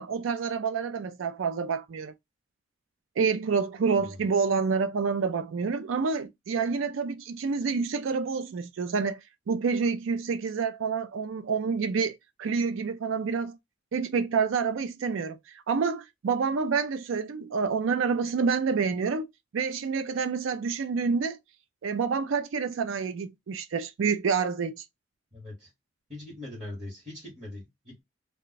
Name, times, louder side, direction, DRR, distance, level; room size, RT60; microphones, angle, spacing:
voice 1, 0.0-2.1 3.2-9.2 9.5-13.6 13.9-15.4 15.7-19.3 19.5-21.4 21.8-24.8, right 5 dB, 90° right, 0.4 m, -28 dB
voice 2, 25.3-25.7 26.1-28.0, left 1 dB, 30° right, 1.3 m, -41 dB
2.4 x 2.1 x 3.9 m
head